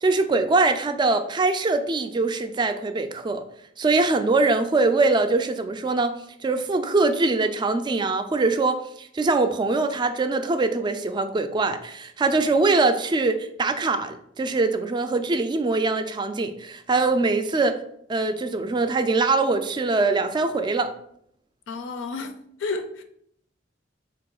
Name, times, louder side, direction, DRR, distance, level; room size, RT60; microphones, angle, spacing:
voice 1, 0.0-3.4 3.8-6.1 6.4-17.8 18.1-20.9, right 3 dB, 25° right, 0.3 m, -23 dB
voice 2, 21.7-22.3 22.6-23.0, left 3 dB, 80° left, 0.4 m, -31 dB
3.6 x 2.7 x 3.8 m
head